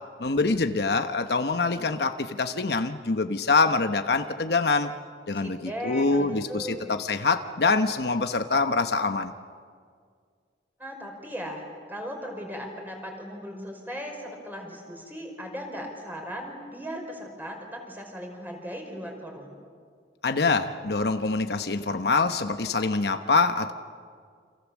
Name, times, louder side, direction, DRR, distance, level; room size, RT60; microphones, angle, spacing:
voice 1, 0.2-4.9 5.3-9.3 20.2-23.7, left 3 dB, 65° left, 8 dB, 1.0 m, -25 dB
voice 2, 5.3-7.0 10.8-11.6 11.9-19.5, equal, 10° right, 2 dB, 5.4 m, -37 dB
29.5 x 27.5 x 7.3 m, 2.1 s
head